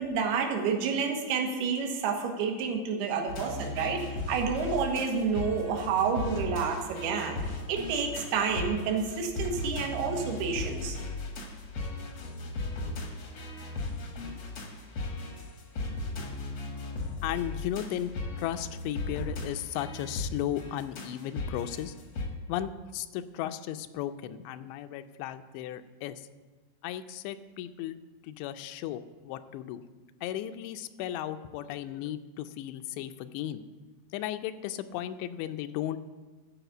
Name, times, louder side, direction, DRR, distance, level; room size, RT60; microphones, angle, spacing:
voice 1, 0.0-11.0, right 5 dB, 75° right, 3 dB, 3.0 m, -29 dB
sound 1, 3.3-22.3, left 2 dB, 70° left, 1.3 m, -37 dB
voice 2, 17.2-18.1 18.4-21.9 22.5-26.2 26.8-28.0 28.2-29.8 30.2-33.6 34.1-36.0, left 12 dB, 85° left, 9 dB, 2.8 m, -35 dB
14.0 x 4.9 x 8.0 m, 1.3 s
omnidirectional pair, 4.9 m